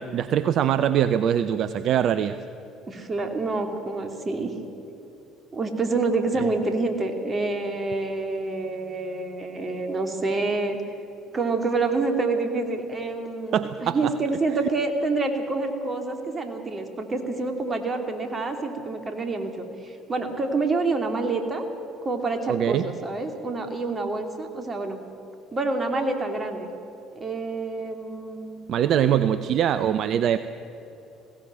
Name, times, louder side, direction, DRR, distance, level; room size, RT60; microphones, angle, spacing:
voice 1, 0.0-2.4 6.3-6.5 13.5-14.1 22.5-22.9 28.7-30.4, right 9 dB, 55° right, 13 dB, 0.6 m, -23 dB
voice 2, 2.9-4.5 5.5-10.8 11.3-21.6 22.0-25.0 25.5-26.7 27.1-28.6 29.1-29.4, right 3 dB, 30° right, 5 dB, 2.9 m, -27 dB
20.5 x 17.0 x 7.7 m, 3.0 s
hypercardioid pair, 60°, 0 cm